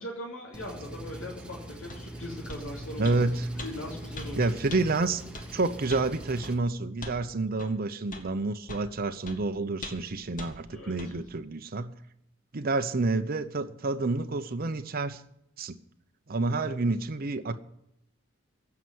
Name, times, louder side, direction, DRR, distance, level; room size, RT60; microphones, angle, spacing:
voice 1, 0.0-3.3 3.6-4.6 10.7-11.1, left 1 dB, 70° left, -2 dB, 3.0 m, -40 dB
Engine, 0.5-6.5, right 1 dB, 5° right, 1.4 m, -41 dB
sound 1, 1.9-2.0 2.5-2.7 3.0-3.2 3.6-3.7 4.2-4.3 4.7-4.8 5.3-5.5 5.9-6.1 6.4-6.6 7.0-7.2 7.6-7.7 8.1-8.3 8.7-8.9 9.3-9.4 9.8-10.1 10.4-10.5 11.0-11.1, left 2 dB, 40° left, 1.8 m, -40 dB
voice 2, 3.0-3.4 4.4-5.2 5.5-11.9 12.5-15.2 15.6-15.8 16.3-17.6, right 3 dB, 45° right, 8 dB, 0.8 m, -29 dB
16.0 x 5.9 x 9.3 m, 0.78 s
head